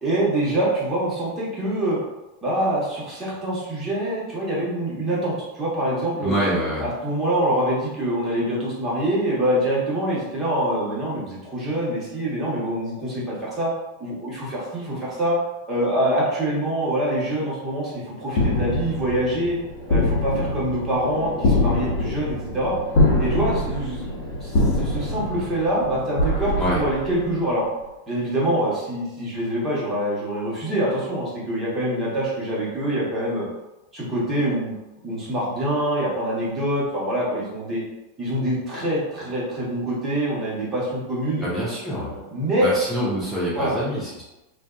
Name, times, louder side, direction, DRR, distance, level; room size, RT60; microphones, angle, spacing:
voice 1, 0.0-2.0 2.4-6.4 6.8-13.7 14.0-15.4 15.7-19.6 19.9-22.8 23.2-24.1 24.4-27.6 28.1-33.5 33.9-34.7 35.0-37.8 38.2-41.4 41.9-42.7 43.5-43.7, right 1 dB, 25° right, -7 dB, 1.1 m, -25 dB
voice 2, 6.2-6.8 26.6-26.8 41.4-42.1 42.6-44.2, equal, 5° left, -9 dB, 0.8 m, -25 dB
sound 1, 18.3-27.6, left 2 dB, 60° left, 0.8 m, -24 dB
2.5 x 2.4 x 2.3 m, 1.0 s
hypercardioid pair, 95°, 0 cm